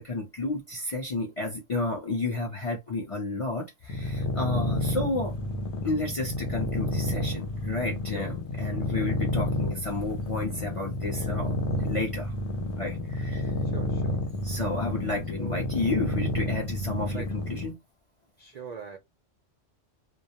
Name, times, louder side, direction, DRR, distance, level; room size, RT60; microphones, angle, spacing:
voice 1, 0.0-5.3 5.8-12.3 12.8-13.5 14.4-17.8, left 2 dB, 45° left, 0.4 m, -31 dB
sound 1, 3.9-17.7, left 1 dB, 70° left, 0.9 m, -30 dB
voice 2, 13.6-14.2 15.4-15.6 17.1-17.3 18.4-19.0, right 6 dB, 65° right, 0.4 m, -41 dB
2.3 x 2.0 x 2.7 m
omnidirectional pair, 1.3 m